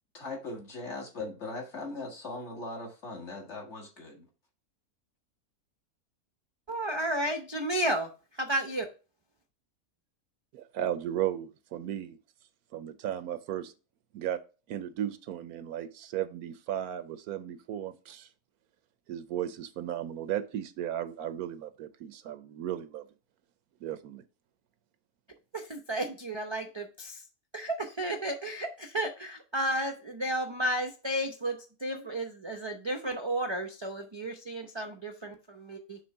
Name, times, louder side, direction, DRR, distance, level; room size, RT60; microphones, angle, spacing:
voice 1, 0.1-4.3, left 2 dB, 50° left, 1.9 m, -39 dB
voice 2, 6.7-8.9 25.5-27.2 27.5-36.0, right 1 dB, 35° right, 0.4 m, -33 dB
voice 3, 10.5-12.2 12.7-13.7 14.1-14.4 14.7-18.3 19.1-23.0 23.8-24.2, right 11 dB, 80° right, 1.2 m, -35 dB
6.1 x 3.4 x 5.2 m
omnidirectional pair, 1.6 m